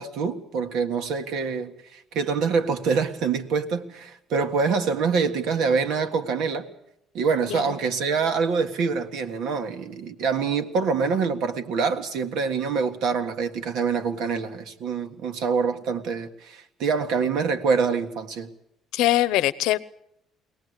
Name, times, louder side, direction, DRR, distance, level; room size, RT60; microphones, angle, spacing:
voice 1, 0.0-6.7 7.1-18.5, right 5 dB, 70° right, 1.7 m, -25 dB
voice 2, 18.9-19.8, left 14 dB, 90° left, 0.7 m, -22 dB
23.0 x 18.0 x 8.2 m
cardioid pair, 150°, 0 cm